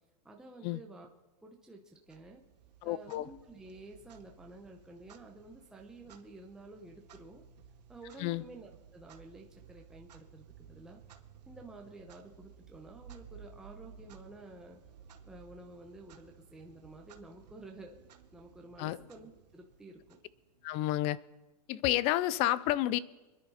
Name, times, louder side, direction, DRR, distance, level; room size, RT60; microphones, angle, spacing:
voice 1, 0.2-1.1 1.4-2.4 2.8-7.4 7.9-11.0 11.5-14.8 15.3-18.0 18.3-20.2, right 2 dB, 5° right, 0.9 m, -51 dB
Clock, 2.1-20.8, right 7 dB, 85° right, 1.9 m, -57 dB
voice 2, 2.8-3.3 8.2-8.4 18.8-19.0 20.6-21.2 21.7-23.0, left 15 dB, 30° left, 0.4 m, -30 dB
27.5 x 10.5 x 4.2 m
supercardioid pair, 155°, 21 cm